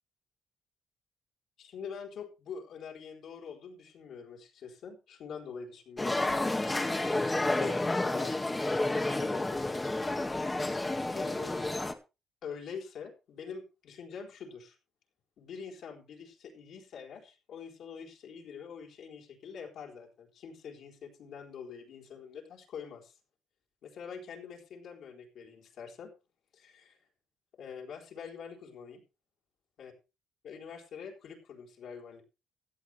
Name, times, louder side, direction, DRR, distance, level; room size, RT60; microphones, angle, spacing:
voice 1, 1.6-6.2 7.0-10.4 11.1-11.9 12.4-14.8 15.4-23.2 23.8-26.1 26.5-27.0 27.5-29.0 29.8-29.9 30.4-32.2, left 6 dB, 70° left, 0 dB, 4.2 m, -45 dB
sound 1, 6.0-11.9, left 2 dB, 15° left, 2.0 m, -30 dB
16.5 x 11.5 x 3.4 m, 0.29 s
cardioid pair, 90°, 0 cm